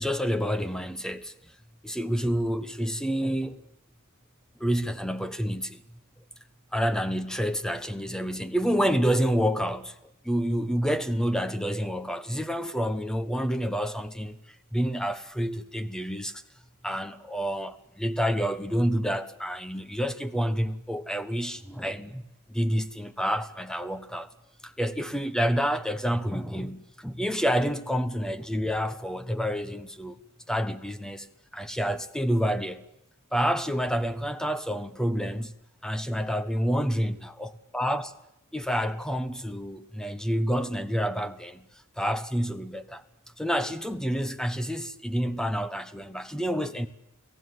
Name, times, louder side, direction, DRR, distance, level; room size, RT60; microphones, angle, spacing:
voice 1, 0.0-1.3 1.8-3.5 4.6-5.8 6.7-10.0 10.2-14.4 14.7-16.4 16.8-22.2 22.5-24.3 24.6-30.2 30.5-31.3 31.5-32.8 33.3-35.5 35.8-38.1 38.5-41.6 42.0-43.0 43.4-46.9, equal, 5° left, 1.2 m, -28 dB
29.5 x 18.0 x 9.6 m
head